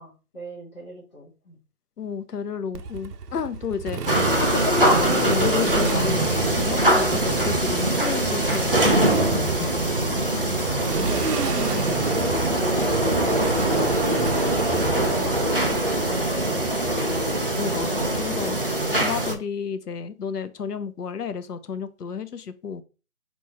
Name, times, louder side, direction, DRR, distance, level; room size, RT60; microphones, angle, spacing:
voice 1, 0.0-1.6 10.0-16.9, left 1 dB, 25° left, -6 dB, 2.2 m, -38 dB
voice 2, 2.0-4.0 4.4-9.7 10.1-10.2 17.6-18.6 18.9-22.8, left 6 dB, 85° left, 12 dB, 0.8 m, -31 dB
Motorcycle, 2.7-15.6, right 6 dB, 90° right, 0.7 m, -32 dB
sound 1, 4.1-19.3, right 1 dB, 40° right, 0.5 m, -23 dB
4.4 x 3.0 x 3.4 m, 0.33 s
hypercardioid pair, 175°, 45 cm